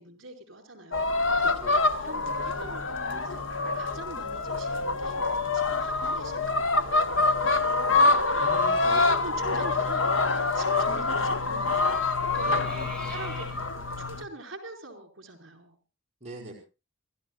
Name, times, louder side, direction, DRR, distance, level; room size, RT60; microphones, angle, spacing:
voice 1, 0.0-1.5 2.0-7.9 8.3-8.5 9.1-13.7 14.0-15.8, right 2 dB, 65° right, 5 dB, 4.8 m, -45 dB
sound 1, 0.9-14.2, left 3 dB, 70° left, 1.5 m, -26 dB
voice 2, 1.4-2.0 8.4-9.7 10.7-11.1 12.4-13.2 16.2-16.6, right 2 dB, 35° right, -2 dB, 4.9 m, -43 dB
sound 2, 4.7-6.4 6.8-6.9 7.2-7.6 8.0-8.3 9.2-13.5, right 1 dB, 5° left, 6.8 m, -48 dB
28.5 x 13.5 x 2.4 m, 0.32 s
head